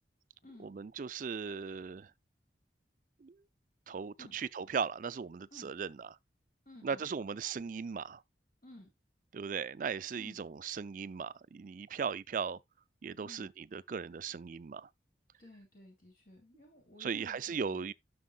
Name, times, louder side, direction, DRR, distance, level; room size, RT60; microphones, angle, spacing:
voice 1, 0.6-2.1 3.2-3.3 3.9-5.9 6.8-8.2 9.3-12.6 13.0-14.9 17.0-17.9, right 6 dB, 50° right, 0.4 m, -38 dB
voice 2, 6.6-7.1 8.6-8.9 10.2-10.4 13.2-13.5 15.4-17.9, left 1 dB, 50° left, 2.7 m, -55 dB
11.5 x 6.3 x 2.2 m
head